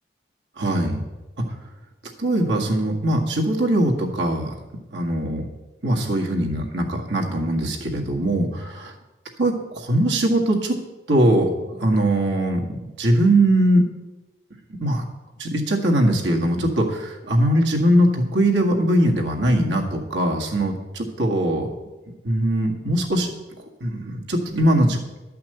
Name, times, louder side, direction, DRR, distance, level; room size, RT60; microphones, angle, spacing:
voice 1, 0.6-1.0 1.4-1.5 2.2-4.5 4.9-5.5 5.8-8.9 9.4-10.8 11.1-13.9 14.8-15.0 15.4-21.7 22.2-23.3 23.8-25.0, right 1 dB, 80° right, 0 dB, 1.8 m, -21 dB
12.0 x 5.8 x 7.9 m, 1.1 s
head